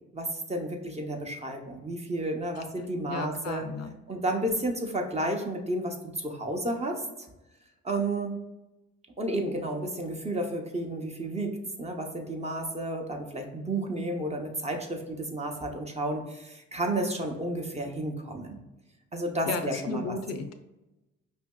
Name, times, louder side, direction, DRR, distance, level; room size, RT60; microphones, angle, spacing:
voice 1, 0.1-3.7 4.1-7.3 7.8-8.4 9.2-11.5 11.8-18.6 19.1-20.0, right 1 dB, 20° right, 2 dB, 0.7 m, -32 dB
voice 2, 3.1-3.9 19.5-20.5, left 4 dB, 60° left, 8 dB, 0.4 m, -34 dB
5.2 x 2.6 x 2.2 m, 1.0 s
cardioid pair, 90°, 30 cm